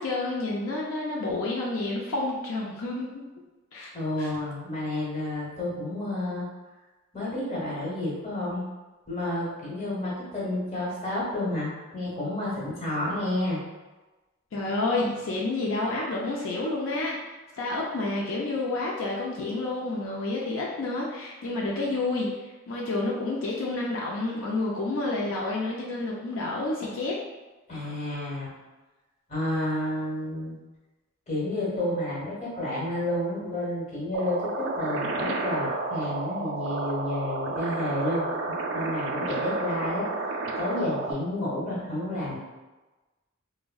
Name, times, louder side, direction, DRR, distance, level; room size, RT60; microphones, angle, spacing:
voice 1, 0.0-3.2 3.7-3.9 4.2-4.3 14.5-27.2, left 2 dB, 80° left, -3 dB, 0.4 m, -29 dB
voice 2, 3.9-6.5 7.1-8.6 9.1-13.6 27.7-28.5 29.3-30.6 31.3-38.3 38.7-40.1 40.6-42.4, left 1 dB, 35° left, -7 dB, 1.0 m, -30 dB
sound 1, 34.1-41.1, right 3 dB, 75° right, 0.3 m, -31 dB
3.5 x 2.1 x 2.3 m, 1.2 s
head